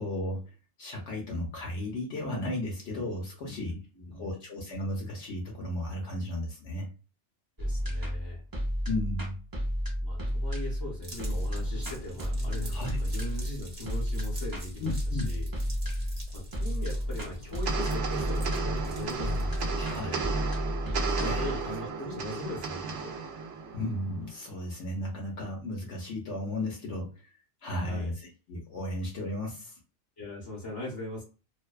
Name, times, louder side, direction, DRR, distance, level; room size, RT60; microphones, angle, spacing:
voice 1, 0.0-3.8 4.1-6.9 8.9-9.4 12.7-13.0 14.8-15.3 19.8-20.3 21.2-21.6 23.7-29.8, left 1 dB, 70° left, -1 dB, 0.9 m, -35 dB
voice 2, 3.4-4.3 7.6-8.4 10.0-15.5 16.3-20.3 20.8-23.1 27.8-28.1 30.2-31.2, left 1 dB, 25° left, -5 dB, 0.6 m, -40 dB
sound 1, 7.6-24.7, equal, 30° right, 0.4 m, -33 dB
sound 2, 11.0-20.2, equal, 50° right, 1.0 m, -45 dB
sound 3, 17.7-24.3, right 5 dB, 75° right, 0.9 m, -34 dB
2.5 x 2.1 x 2.2 m, 0.33 s
omnidirectional pair, 1.2 m